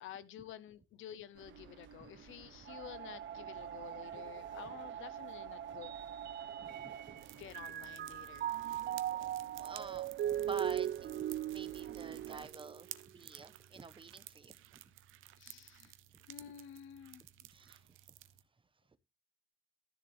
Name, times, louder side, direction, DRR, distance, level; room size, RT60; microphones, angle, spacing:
voice 1, 0.0-6.0 7.4-8.5 15.4-15.9 16.3-17.2, left 10 dB, 80° left, 0.9 m, -51 dB
sound 1, 1.4-12.5, right 9 dB, 70° right, 1.1 m, -49 dB
Mallet percussion, 5.8-7.2 7.5-13.0, right 11 dB, 55° right, 0.5 m, -38 dB
voice 2, 6.6-7.4 8.7-9.3 9.6-14.6 17.5-17.8, right 4 dB, 25° right, 1.1 m, -49 dB
sound 2, 7.2-18.4, right 14 dB, 90° right, 0.7 m, -55 dB
13.0 x 7.0 x 3.5 m
cardioid pair, 90°, 20 cm